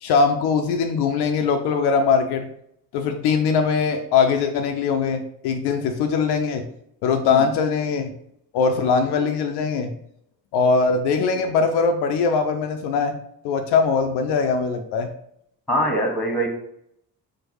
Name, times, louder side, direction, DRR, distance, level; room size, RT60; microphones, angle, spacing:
voice 1, 0.0-2.5 2.9-6.6 7.0-8.1 8.5-9.9 10.5-13.2 13.4-15.1, left 5 dB, 55° left, 5 dB, 0.6 m, -21 dB
voice 2, 15.7-16.5, equal, ahead, 1 dB, 1.3 m, -22 dB
4.6 x 2.1 x 4.5 m, 0.73 s
figure-of-eight pair, 45°, 48 cm